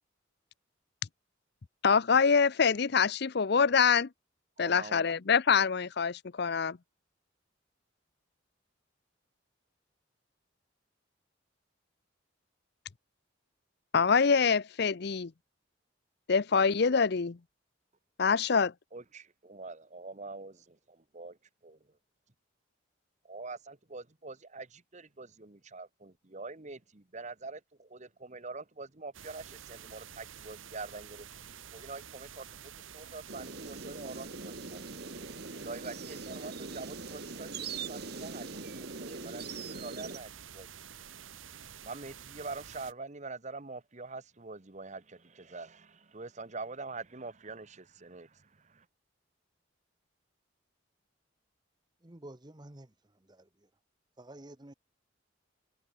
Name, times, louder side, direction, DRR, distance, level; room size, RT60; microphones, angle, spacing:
voice 1, 1.8-4.1 4.6-6.8 13.9-15.3 16.3-17.4 18.2-18.7, left 5 dB, 55° left, 0.6 m, -25 dB
voice 2, 4.6-5.1 18.9-21.4 21.6-21.8 23.2-32.5 32.8-34.8 35.6-40.9 41.8-48.9, right 3 dB, 35° right, 1.3 m, -45 dB
sound 1, 29.1-42.9, right 8 dB, 85° right, 1.2 m, -49 dB
sound 2, 33.3-40.2, right 4 dB, 55° right, 1.9 m, -42 dB
voice 3, 52.0-52.9 54.2-54.7, right 1 dB, 20° right, 1.0 m, -49 dB
head